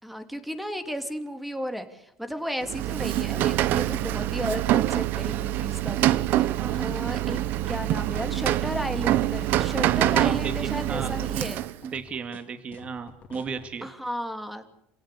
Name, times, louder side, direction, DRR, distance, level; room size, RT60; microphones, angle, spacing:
voice 1, 0.0-7.4 7.7-11.6 13.8-14.7, equal, ahead, 8 dB, 3.1 m, -34 dB
Rain, 2.6-11.9, right 14 dB, 60° right, 1.1 m, -25 dB
sound 1, 5.8-13.7, left 7 dB, 40° left, 3.2 m, -49 dB
voice 2, 6.6-6.9 10.1-10.5 10.9-11.1 11.8-13.9, right 5 dB, 35° right, 9 dB, 2.5 m, -34 dB
28.0 x 17.5 x 8.6 m, 0.79 s
supercardioid pair, 120°, 4 cm